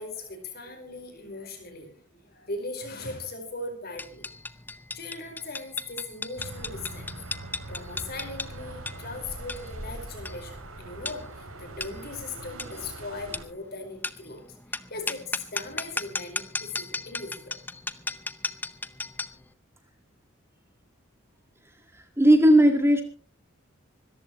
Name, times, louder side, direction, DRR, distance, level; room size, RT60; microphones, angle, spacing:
voice 1, 0.0-4.2 4.9-7.1 7.7-17.6, left 3 dB, 50° left, 5 dB, 4.9 m, -39 dB
sound 1, 4.0-19.4, left 3 dB, 10° left, 0.6 m, -36 dB
sound 2, 6.4-13.5, right 1 dB, 85° right, 2.9 m, -41 dB
voice 2, 21.9-23.0, right 1 dB, 10° right, 5 dB, 1.9 m, -17 dB
26.0 x 14.5 x 3.1 m, 0.40 s
head